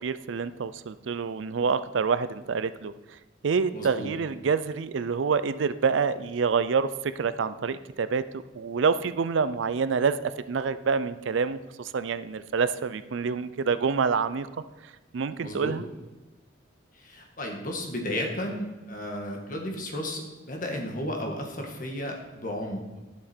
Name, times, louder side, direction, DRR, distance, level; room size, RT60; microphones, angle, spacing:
voice 1, 0.0-2.9 3.4-14.5 14.8-15.8, right 5 dB, 75° right, 14 dB, 0.4 m, -27 dB
voice 2, 3.7-4.1 15.4-15.7 16.9-22.9, left 1 dB, 45° left, 2 dB, 1.6 m, -33 dB
11.5 x 7.2 x 4.4 m, 1.2 s
head